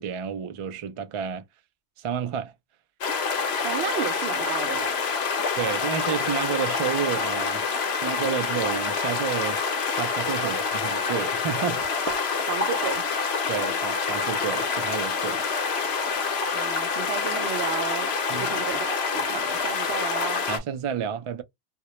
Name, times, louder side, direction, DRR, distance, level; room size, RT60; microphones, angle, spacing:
voice 1, 0.0-1.5 2.0-2.5 5.6-7.7 8.0-9.6 9.9-11.8 13.5-15.5 18.3-18.5 20.5-21.4, right 8 dB, 60° right, 0.3 m, -30 dB
sound 1, 3.0-20.6, left 5 dB, 80° left, 0.9 m, -27 dB
voice 2, 3.6-5.0 10.4-10.5 11.1-11.2 12.1-13.1 16.5-20.4, right 9 dB, 90° right, 0.8 m, -33 dB
sound 2, 11.5-17.4, left 1 dB, 20° left, 0.5 m, -47 dB
2.1 x 2.0 x 2.8 m
omnidirectional pair, 1.1 m